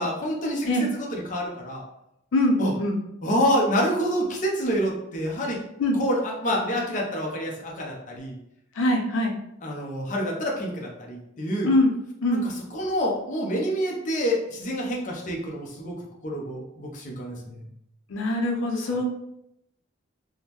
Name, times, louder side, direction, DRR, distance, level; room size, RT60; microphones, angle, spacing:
voice 1, 0.0-1.8 2.6-2.7 3.2-5.6 6.0-8.3 9.6-11.7 12.4-15.9 16.2-17.6, equal, 40° left, -1 dB, 0.6 m, -27 dB
voice 2, 2.3-3.0 5.8-6.0 8.8-9.3 11.6-11.9 12.2-12.4 18.1-19.0, left 1 dB, 90° left, 2 dB, 0.5 m, -23 dB
3.6 x 2.1 x 2.9 m, 0.80 s
head